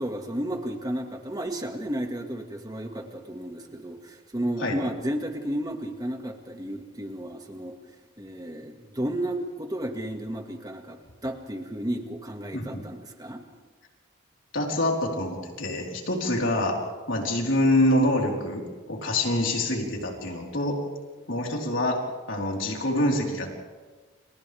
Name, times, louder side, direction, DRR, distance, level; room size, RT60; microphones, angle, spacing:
voice 1, 0.0-7.8 8.2-13.4, right 1 dB, 20° right, 4 dB, 2.0 m, -33 dB
voice 2, 14.5-16.8 17.1-20.8 21.3-22.0 22.3-23.5, left 1 dB, 70° left, -1 dB, 4.4 m, -26 dB
30.0 x 28.0 x 3.6 m, 1.3 s
head